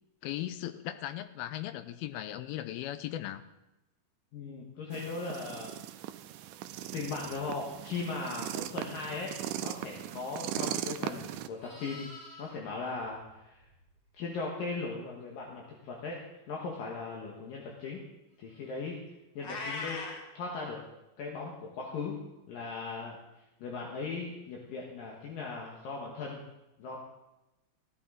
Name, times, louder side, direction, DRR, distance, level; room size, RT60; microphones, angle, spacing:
voice 1, 0.2-3.4, left 13 dB, 85° left, 11 dB, 2.5 m, -37 dB
voice 2, 4.3-5.7 6.9-12.1 12.4-13.6 14.2-16.2 16.5-18.0 18.4-19.0 19.3-20.0 20.3-20.8 21.2-22.2 22.5-23.2 23.6-26.4 26.8-27.0, left 4 dB, 70° left, -2 dB, 3.0 m, -38 dB
sound 1, 4.9-11.5, right 13 dB, 85° right, 1.9 m, -39 dB
Livestock farm animals working animals, 11.1-14.2 18.5-18.7, left 2 dB, 15° left, 1.8 m, -53 dB
Meow, 19.4-20.2, left 3 dB, 50° left, 1.3 m, -37 dB
16.0 x 12.5 x 3.9 m, 0.96 s
omnidirectional pair, 4.3 m